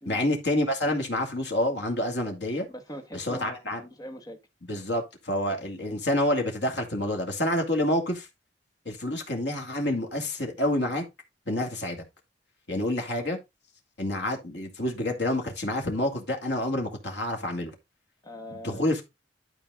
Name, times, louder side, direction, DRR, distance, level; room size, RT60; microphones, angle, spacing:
voice 1, 0.1-2.7 3.1-3.8 4.7-8.3 8.9-11.1 11.5-12.0 12.7-13.4 14.0-17.7 18.5-19.0, left 1 dB, 70° left, 2.4 m, -28 dB
voice 2, 2.7-4.4 18.2-18.9, equal, 20° left, 1.4 m, -41 dB
12.0 x 4.5 x 3.7 m
head